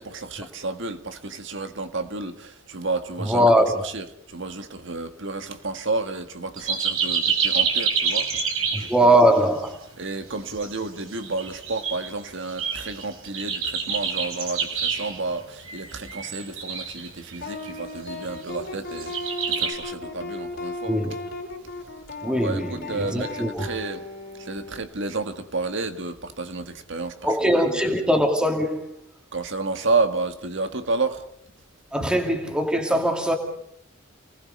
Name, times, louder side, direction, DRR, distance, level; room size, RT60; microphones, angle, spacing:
voice 1, 0.0-3.5 3.8-8.3 8.8-8.9 10.0-19.1 19.5-20.9 22.3-24.0 24.4-27.8 29.3-31.2 32.0-32.1, right 3 dB, 60° right, 1.7 m, -31 dB
voice 2, 3.2-3.9 8.7-9.8 20.9-21.1 22.2-23.7 27.2-28.9 31.9-33.4, equal, 5° right, 2.4 m, -21 dB
sound 1, 6.6-8.9 9.2-9.4 9.7-9.8 10.5-12.1 12.5-15.2 15.6-17.4 17.7-18.4 18.8-19.7, right 6 dB, 80° right, 4.6 m, -27 dB
sound 2, 17.4-24.8, left 2 dB, 55° left, 4.2 m, -36 dB
29.0 x 19.0 x 5.4 m
head